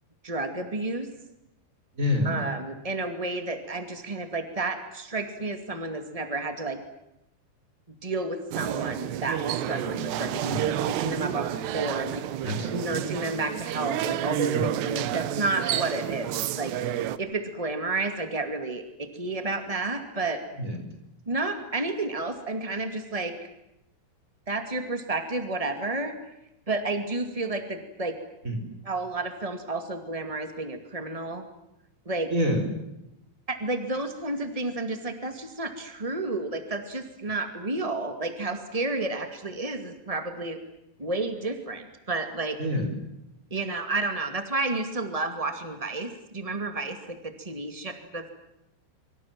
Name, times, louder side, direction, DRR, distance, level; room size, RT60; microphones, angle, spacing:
voice 1, 0.2-1.1 2.2-6.8 8.0-16.7 17.2-20.4 21.2-23.3 24.5-26.1 26.7-28.1 28.8-31.4 32.0-32.3 33.5-40.6 41.0-42.6 43.5-48.3, right 2 dB, 35° right, 7 dB, 0.5 m, -31 dB
voice 2, 1.9-2.4 10.5-10.7 12.4-13.1 14.5-14.7 20.6-20.8 28.4-28.7 32.3-32.7 42.6-43.0, left 1 dB, 15° right, 6 dB, 5.0 m, -28 dB
sound 1, 8.5-17.2, right 12 dB, 75° right, 3.1 m, -30 dB
26.5 x 25.5 x 7.6 m, 0.89 s
omnidirectional pair, 5.2 m